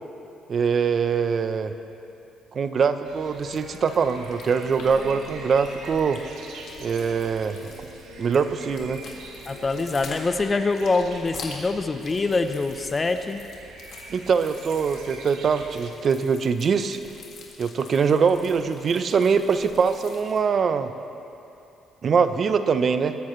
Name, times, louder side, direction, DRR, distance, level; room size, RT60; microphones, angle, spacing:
voice 1, 0.5-1.7 2.5-6.2 6.8-7.7 8.2-9.0 14.1-17.0 17.6-20.9 22.0-23.2, right 6 dB, 50° right, 10 dB, 0.8 m, -23 dB
sound 1, 3.0-15.9, right 3 dB, 80° right, 1.6 m, -44 dB
sound 2, 3.2-20.4, left 4 dB, 65° left, 2.2 m, -46 dB
sound 3, 3.3-10.9, left 3 dB, 90° left, 3.2 m, -44 dB
voice 2, 9.5-13.4, left 3 dB, 30° left, 8 dB, 0.8 m, -24 dB
20.5 x 13.0 x 3.2 m, 2.8 s
cardioid pair, 85°, 0 cm